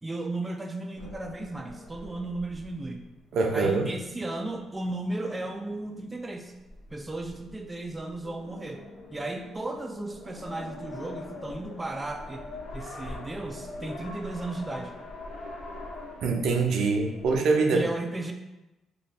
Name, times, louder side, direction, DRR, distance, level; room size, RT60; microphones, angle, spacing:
voice 1, 0.0-3.0 3.5-6.5 6.9-8.8 9.1-12.4 12.7-14.9 17.7-18.3, right 2 dB, 15° right, 3 dB, 0.3 m, -35 dB
sound 1, 0.9-17.4, left 2 dB, 85° left, 0.7 m, -44 dB
voice 2, 3.3-3.9 16.2-17.9, right 4 dB, 75° right, 2 dB, 0.5 m, -24 dB
3.2 x 2.3 x 4.1 m, 1.0 s
cardioid pair, 90°, 0 cm